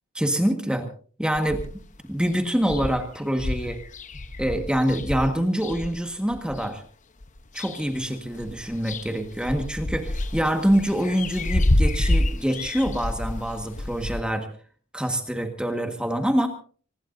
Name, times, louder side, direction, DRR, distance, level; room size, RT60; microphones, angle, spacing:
voice 1, 0.1-0.9 1.2-1.6 2.1-3.8 4.4-6.8 7.5-14.5 14.9-16.5, equal, 5° right, 5 dB, 1.6 m, -25 dB
sound 1, 1.4-2.0 2.3-2.4 2.6-6.7 7.2-8.1 8.3-14.2, left 1 dB, 40° left, 0.9 m, -28 dB
24.5 x 20.0 x 2.7 m, 0.43 s
head